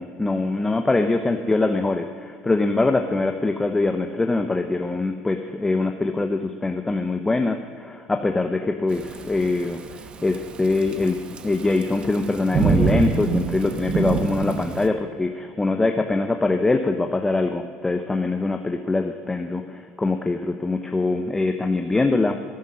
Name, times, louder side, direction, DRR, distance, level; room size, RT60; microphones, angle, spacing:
voice 1, 0.0-11.2 11.4-22.4, left 3 dB, 15° left, 6 dB, 0.7 m, -23 dB
Thunderstorm / Rain, 8.9-14.9, right 5 dB, 35° right, 0.9 m, -26 dB
12.5 x 9.5 x 6.4 m, 2.1 s
supercardioid pair, 110°, 3 cm